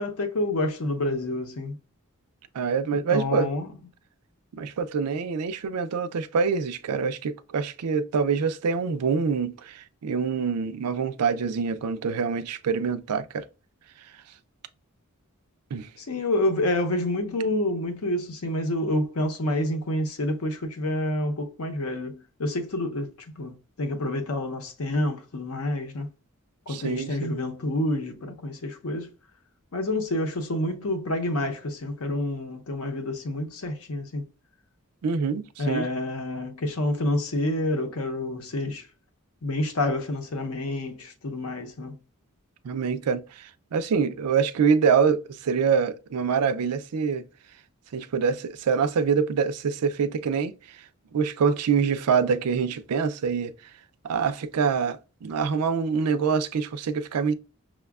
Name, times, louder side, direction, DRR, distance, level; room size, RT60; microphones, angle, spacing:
voice 1, 0.0-1.8 2.9-3.7 16.0-26.1 26.7-29.1 29.7-34.3 35.6-38.9 39.4-42.0, left 1 dB, 70° left, 0.7 m, -28 dB
voice 2, 2.5-3.5 4.6-13.4 15.7-15.9 26.7-27.3 35.0-35.9 42.6-47.3 47.9-50.5 51.1-53.5 54.0-57.3, right 6 dB, 90° right, 0.4 m, -25 dB
5.9 x 2.2 x 2.3 m
head